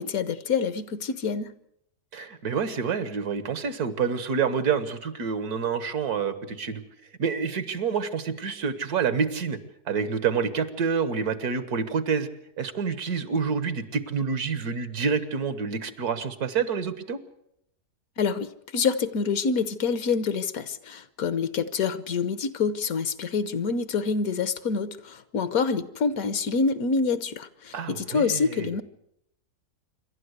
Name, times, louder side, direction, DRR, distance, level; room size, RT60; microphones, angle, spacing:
voice 1, 0.0-1.5 18.2-28.8, left 5 dB, 70° left, 14 dB, 1.4 m, -27 dB
voice 2, 2.1-6.8 7.2-9.6 9.9-12.3 12.6-17.2 27.7-28.7, right 6 dB, 80° right, 12 dB, 1.8 m, -28 dB
27.0 x 12.0 x 8.1 m, 0.78 s
omnidirectional pair, 1.6 m